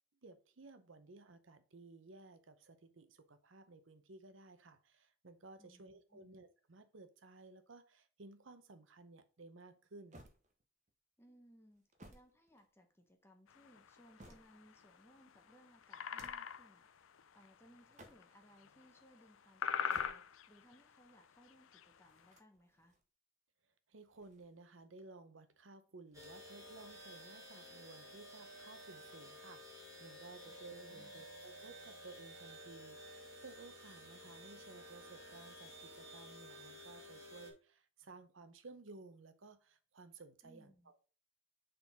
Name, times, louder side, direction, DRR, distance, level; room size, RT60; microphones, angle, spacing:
voice 1, 0.2-10.2 23.9-41.1, right 3 dB, 70° right, 0.8 m, -57 dB
voice 2, 5.6-6.3 11.2-17.1 17.3-23.0 30.4-30.6 30.9-31.3 40.4-40.9, equal, 10° left, 0.9 m, -65 dB
sound 1, 10.1-10.9 11.7-13.1 13.7-14.8 16.0-16.6 17.8-18.5 19.7-20.6 22.1-23.0 23.9-24.9 26.1-26.7 27.0-27.1 28.0-28.8, right 1 dB, 35° right, 0.8 m, -62 dB
sound 2, 13.5-22.3, left 7 dB, 75° left, 0.5 m, -42 dB
sound 3, 26.1-37.5, equal, 15° right, 2.0 m, -53 dB
6.8 x 3.9 x 4.1 m
head